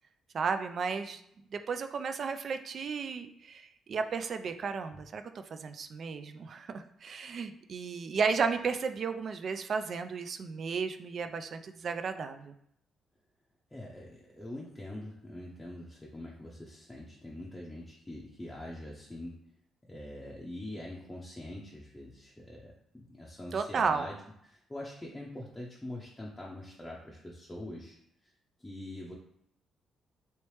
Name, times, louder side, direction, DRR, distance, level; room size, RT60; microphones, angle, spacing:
voice 1, 0.3-1.2 1.5-5.2 5.5-12.5 23.5-24.1, right 5 dB, 55° right, 8 dB, 0.3 m, -33 dB
voice 2, 13.7-19.3 19.9-24.2 24.4-28.0 28.2-28.3 28.6-29.1, left 1 dB, 10° left, -4 dB, 0.6 m, -44 dB
3.0 x 3.0 x 3.2 m, 0.74 s
cardioid pair, 90°, 0 cm